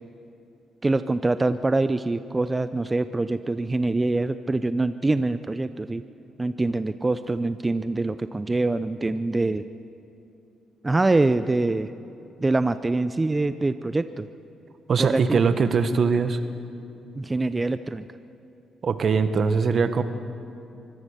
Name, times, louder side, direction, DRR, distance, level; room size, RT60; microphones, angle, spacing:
voice 1, 0.8-6.0 6.4-9.6 10.8-11.9 12.4-14.3 15.0-15.4 17.2-18.1, right 2 dB, 20° right, 12 dB, 0.5 m, -24 dB
voice 2, 14.9-16.4 18.8-20.0, right 5 dB, 50° right, 10 dB, 1.3 m, -21 dB
24.0 x 17.5 x 6.7 m, 2.7 s
cardioid pair, 90°, 0 cm